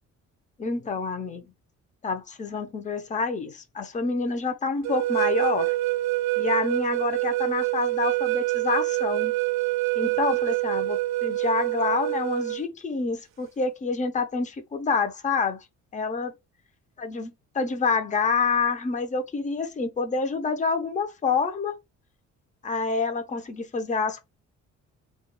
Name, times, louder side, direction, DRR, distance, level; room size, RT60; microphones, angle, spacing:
voice 1, 0.6-1.5 2.0-5.8 6.4-9.4 10.0-15.6 15.9-16.3 17.0-21.8 22.6-24.2, left 4 dB, 25° left, 0.6 m, -27 dB
sound 1, 4.8-12.6, right 18 dB, 65° right, 0.5 m, -26 dB
2.3 x 2.3 x 2.9 m
cardioid pair, 90°, 30 cm